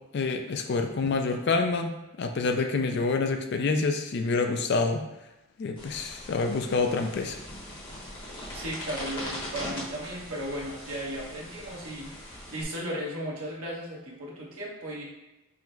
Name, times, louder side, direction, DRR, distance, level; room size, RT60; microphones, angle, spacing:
voice 1, 0.1-5.0 5.6-7.4, left 4 dB, 50° left, 5 dB, 0.3 m, -27 dB
sound 1, 5.8-12.6, left 1 dB, 25° left, 0.9 m, -41 dB
voice 2, 8.5-15.0, equal, 80° right, -4 dB, 1.1 m, -36 dB
3.6 x 2.1 x 4.4 m, 0.98 s
head